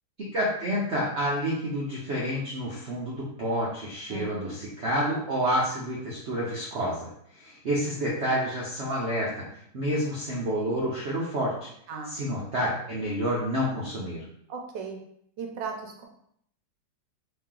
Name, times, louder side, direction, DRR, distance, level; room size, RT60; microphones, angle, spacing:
voice 1, 0.2-7.1 7.3-9.3 9.7-11.7 12.1-14.2, equal, 55° right, -5 dB, 0.7 m, -29 dB
voice 2, 4.1-4.5 11.9-12.1 14.5-15.0 15.4-16.0, right 5 dB, 80° right, 2 dB, 1.3 m, -36 dB
3.1 x 2.9 x 3.7 m, 0.69 s
omnidirectional pair, 2.0 m